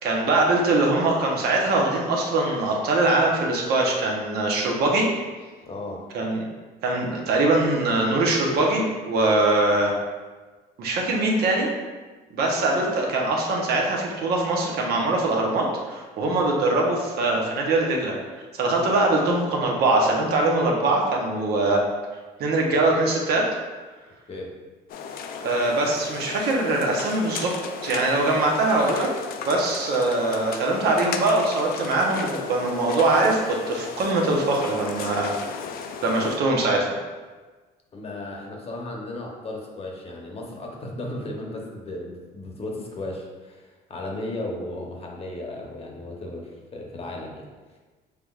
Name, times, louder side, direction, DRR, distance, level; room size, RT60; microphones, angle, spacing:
voice 1, 0.0-5.1 6.1-6.4 6.8-9.9 10.8-11.7 12.3-21.8 22.4-23.5 25.4-27.5 27.8-29.1 29.4-35.3 36.0-36.9, right 2 dB, 70° right, -1 dB, 0.9 m, -22 dB
voice 2, 5.6-6.1 24.3-24.5 37.9-47.4, left 2 dB, 35° left, 0 dB, 0.9 m, -35 dB
sound 1, 24.9-36.4, left 6 dB, 60° left, 0.4 m, -35 dB
5.8 x 3.3 x 2.4 m, 1.3 s
cardioid pair, 110°, 17 cm